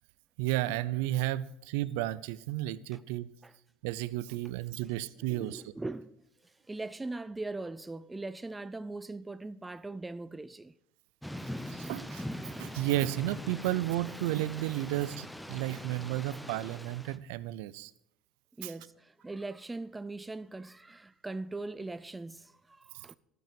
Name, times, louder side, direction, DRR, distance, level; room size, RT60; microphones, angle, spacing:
voice 1, 0.4-3.3 3.8-5.7 11.7-12.3 12.6-17.9 18.6-18.7, right 15 dB, 80° right, 0.5 m, -33 dB
voice 2, 5.2-6.1 6.7-10.7 18.6-23.2, right 2 dB, 15° right, 0.4 m, -40 dB
Thunder / Rain, 11.2-17.2, left 1 dB, 5° left, 0.8 m, -42 dB
12.0 x 9.3 x 5.2 m
supercardioid pair, 85°, 0 cm